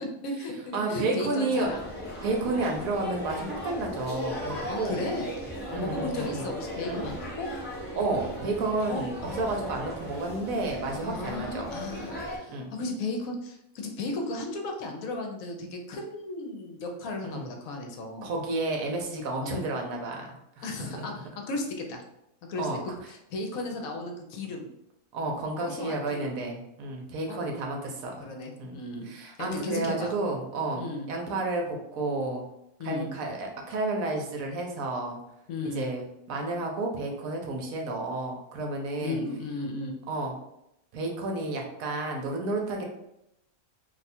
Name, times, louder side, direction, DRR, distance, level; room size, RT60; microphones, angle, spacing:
voice 1, 0.0-1.8 2.1-2.2 4.7-5.3 5.7-7.5 8.9-9.6 11.0-18.3 19.4-19.6 20.6-22.0 22.5-24.7 25.6-26.4 27.3-27.4 28.2-29.1 29.4-30.1 30.8-31.1 32.8-33.1 35.5-35.8 39.0-40.0, left 2 dB, 70° left, 3 dB, 1.0 m, -35 dB
voice 2, 0.7-1.7 2.2-5.0 5.7-6.5 6.9-7.1 7.9-11.7 12.5-12.7 17.2-17.5 18.2-21.0 22.6-22.8 25.1-28.3 28.6-28.8 29.0-32.4 32.8-35.2 35.7-39.2 40.1-40.3 40.9-42.8, right 2 dB, 70° right, 1 dB, 1.0 m, -31 dB
sound 1, 1.6-12.4, equal, 10° left, 0.8 m, -37 dB
2.6 x 2.3 x 4.1 m, 0.83 s
omnidirectional pair, 1.6 m